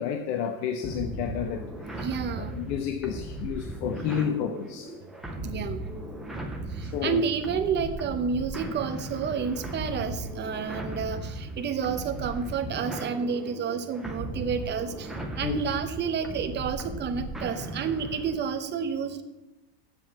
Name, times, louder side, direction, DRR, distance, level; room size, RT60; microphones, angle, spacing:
voice 1, 0.0-2.1 2.4-4.9 6.8-7.2 15.4-15.6, left 8 dB, 75° left, 1.1 m, -31 dB
sound 1, 0.8-18.4, right 1 dB, ahead, 0.3 m, -37 dB
voice 2, 1.9-2.6 5.4-5.9 6.7-19.2, right 6 dB, 20° right, 0.7 m, -30 dB
8.2 x 7.6 x 7.4 m
supercardioid pair, 160°, 49 cm